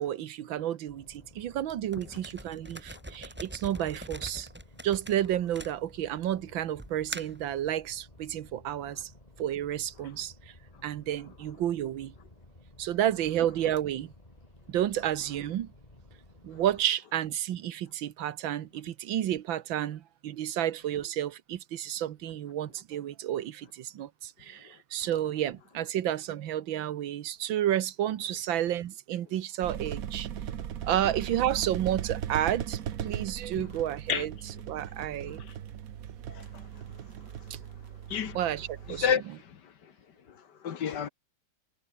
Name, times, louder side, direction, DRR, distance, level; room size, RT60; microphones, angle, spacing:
voice 1, 0.0-4.5 4.8-9.1 9.4-10.3 10.8-12.1 12.8-14.1 14.7-15.7 16.4-30.3 30.8-34.3 34.7-35.4 37.5-37.6 38.3-39.1, right 11 dB, 85° right, 1.8 m, -31 dB
sound 1, 0.9-16.9, left 1 dB, 20° left, 3.8 m, -55 dB
sound 2, 1.9-6.2 6.8-7.5, equal, 5° right, 3.3 m, -43 dB
sound 3, 29.6-39.1, right 9 dB, 55° right, 1.3 m, -38 dB
voice 2, 38.9-39.6 40.6-41.1, left 8 dB, 65° left, 1.9 m, -30 dB
omnidirectional pair, 2.1 m